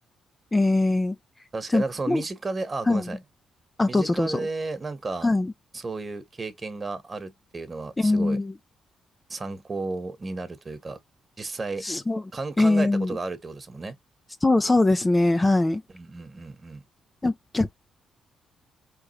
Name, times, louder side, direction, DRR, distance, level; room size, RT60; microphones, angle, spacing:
voice 1, 0.5-1.2 1.7-2.2 2.9-3.1 3.8-4.4 5.2-5.5 8.0-8.5 11.8-12.2 12.6-13.2 14.4-15.8 17.2-17.7, left 2 dB, 25° left, 0.6 m, -22 dB
voice 2, 1.5-3.2 3.9-5.3 5.7-8.4 9.3-11.0 11.4-11.9 12.3-13.9 15.9-16.8, right 3 dB, 35° right, 1.3 m, -33 dB
4.5 x 3.4 x 3.1 m
hypercardioid pair, 45°, 0 cm